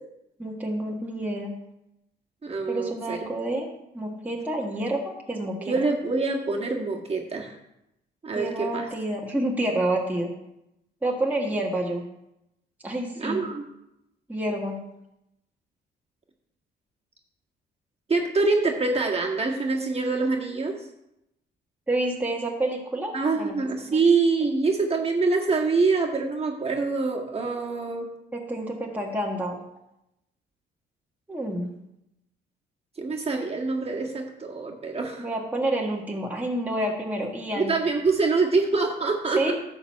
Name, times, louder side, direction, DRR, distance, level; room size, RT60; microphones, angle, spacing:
voice 1, 0.4-1.5 2.7-3.7 3.9-5.8 8.3-10.3 11.0-12.0 12.8-13.4 14.3-14.8 21.9-23.6 23.9-24.0 28.3-29.6 31.3-31.7 35.2-37.7 39.4-39.5, right 1 dB, 10° right, -2 dB, 1.5 m, -28 dB
voice 2, 2.4-3.2 5.6-7.5 8.2-8.9 13.2-13.6 18.1-20.7 23.1-28.1 33.0-35.2 37.5-39.5, right 4 dB, 30° right, 0 dB, 1.7 m, -25 dB
11.5 x 4.0 x 7.3 m, 0.85 s
cardioid pair, 90°, 20 cm